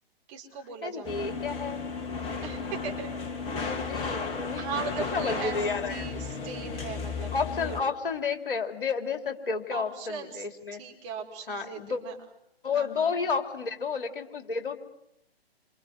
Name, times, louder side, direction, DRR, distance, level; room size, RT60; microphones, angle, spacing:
voice 1, 0.3-1.5 2.4-3.4 4.6-5.6 5.9-7.3 7.6-7.8 9.7-10.5 10.8-12.2 12.7-13.1, right 6 dB, 30° right, 1 dB, 5.0 m, -39 dB
voice 2, 0.8-1.8 3.6-4.6 5.1-6.1 7.3-10.8 11.5-12.0 12.6-14.8, left 5 dB, 55° left, 7 dB, 2.8 m, -31 dB
sound 1, 1.0-7.8, left 4 dB, 20° left, 2.1 m, -34 dB
28.5 x 26.5 x 7.9 m, 0.78 s
figure-of-eight pair, 125°, 32 cm